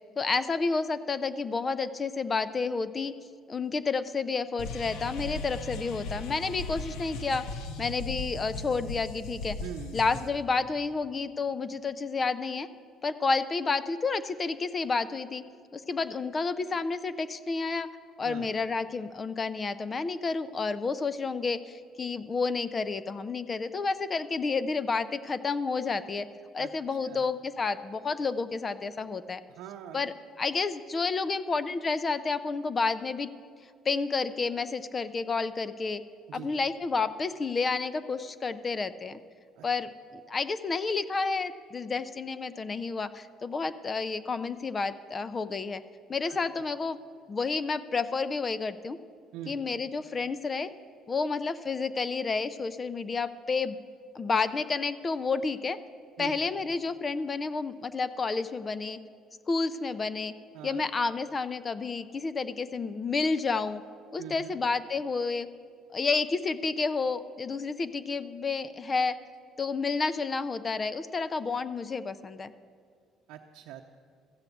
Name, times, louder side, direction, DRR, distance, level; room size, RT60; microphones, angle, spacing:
voice 1, 0.2-3.1 3.5-7.5 7.8-9.6 9.9-12.7 13.0-15.4 15.7-17.9 18.2-26.3 26.5-29.4 29.9-33.3 33.8-36.0 36.3-39.2 39.6-45.8 46.1-47.0 47.3-49.0 49.5-50.7 51.1-53.8 54.1-55.8 56.2-59.0 59.5-60.3 60.6-63.8 64.1-65.5 65.9-69.2 69.6-72.5, left 4 dB, 25° left, 14 dB, 0.4 m, -30 dB
sound 1, 4.6-10.3, left 3 dB, 75° left, 0.8 m, -38 dB
voice 2, 9.6-10.0 18.2-18.5 26.6-27.3 29.5-30.0 36.3-36.5 39.6-39.7 46.3-46.6 49.3-49.6 56.2-56.4 60.5-60.8 64.2-64.5 73.3-73.8, right 11 dB, 85° right, 1 dB, 0.7 m, -43 dB
13.5 x 7.9 x 8.5 m, 2.2 s
cardioid pair, 150°, 0 cm